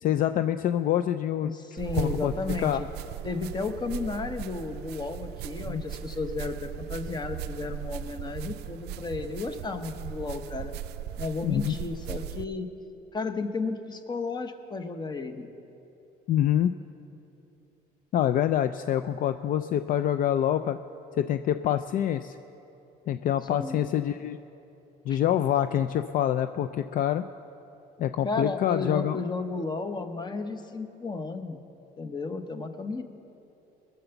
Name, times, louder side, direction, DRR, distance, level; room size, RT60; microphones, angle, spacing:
voice 1, 0.0-1.5 1.9-2.3 2.6-2.8 5.7-5.8 11.4-11.7 16.3-16.7 18.1-20.8 21.2-22.4 23.1-24.4 25.1-27.2 28.0-29.2, left 11 dB, 55° left, 10 dB, 0.4 m, -26 dB
voice 2, 1.4-2.9 3.2-10.8 11.2-12.7 13.1-15.5 23.5-23.9 25.1-25.2 28.2-31.6 32.0-33.0, left 3 dB, 25° left, 8 dB, 1.0 m, -33 dB
sound 1, 1.8-12.5, right 11 dB, 75° right, 0.4 m, -38 dB
20.0 x 6.9 x 7.0 m, 3.0 s
cardioid pair, 110°, 17 cm